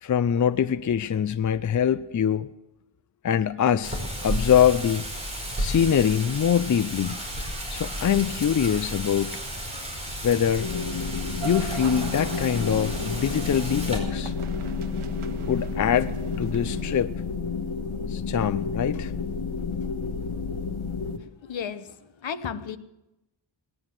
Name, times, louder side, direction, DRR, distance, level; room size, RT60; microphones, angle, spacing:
voice 1, 0.0-2.5 3.2-5.1 5.6-7.2 7.7-9.3 10.2-10.7 11.4-14.3 15.5-17.1 18.1-19.1, left 8 dB, 40° left, 0.5 m, -24 dB
Wind, 3.8-14.0, equal, 15° right, 4.8 m, -33 dB
sound 1, 10.6-21.2, left 5 dB, 85° left, 1.6 m, -31 dB
sound 2, 11.4-17.0, right 8 dB, 90° right, 1.1 m, -40 dB
voice 2, 21.2-22.8, left 7 dB, 70° left, 1.0 m, -34 dB
19.0 x 9.9 x 7.4 m
wide cardioid pair, 155°, 48 cm